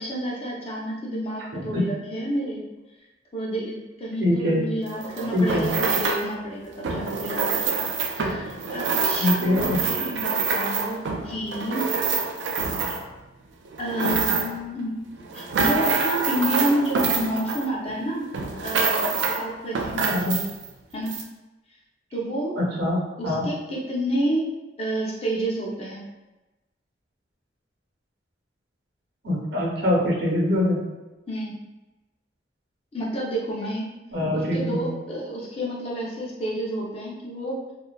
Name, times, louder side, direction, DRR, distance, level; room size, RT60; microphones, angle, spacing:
voice 1, 0.0-2.7 3.3-7.8 8.1-11.9 13.8-15.0 15.3-18.3 18.6-20.5 20.9-21.2 22.1-22.6 23.2-24.5 24.8-26.0 31.3-31.5 32.9-33.9 34.3-37.6, right 1 dB, 30° left, -4 dB, 0.5 m, -29 dB
voice 2, 1.5-1.9 4.2-4.6 5.3-5.7 9.2-9.8 20.1-20.3 22.6-23.0 23.2-23.5 29.2-30.8 34.1-34.9, left 1 dB, 70° right, -4 dB, 0.7 m, -23 dB
sound 1, 4.9-6.3 6.8-13.2 13.7-14.7 15.2-18.0 18.3-19.4 19.8-20.7 21.1-21.2, right 5 dB, 85° right, 0.3 m, -26 dB
2.5 x 2.3 x 2.2 m, 1.1 s
head